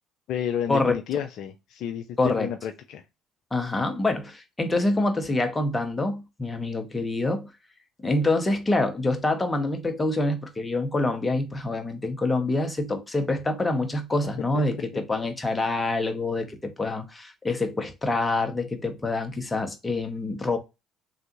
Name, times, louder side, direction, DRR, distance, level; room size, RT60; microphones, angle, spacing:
voice 1, 0.3-3.0, left 9 dB, 65° left, 0.3 m, -31 dB
voice 2, 2.2-2.5 3.5-7.5 8.0-20.6, left 2 dB, 20° left, 0.8 m, -26 dB
3.3 x 2.4 x 2.9 m
hypercardioid pair, 55°, 0 cm